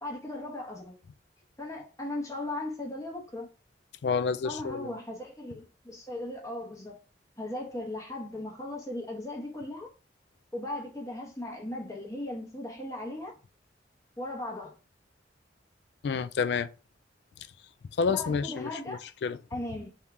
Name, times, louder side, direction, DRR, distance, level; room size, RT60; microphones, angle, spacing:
voice 1, 0.0-1.0 1.6-3.5 4.4-7.0 7.4-9.9 10.5-13.3 14.2-14.8 18.1-19.0 19.5-19.9, left 1 dB, 20° left, 1.0 m, -37 dB
voice 2, 4.0-4.9 16.0-16.7 18.0-19.4, left 5 dB, 65° left, 0.3 m, -29 dB
3.6 x 2.8 x 4.6 m
head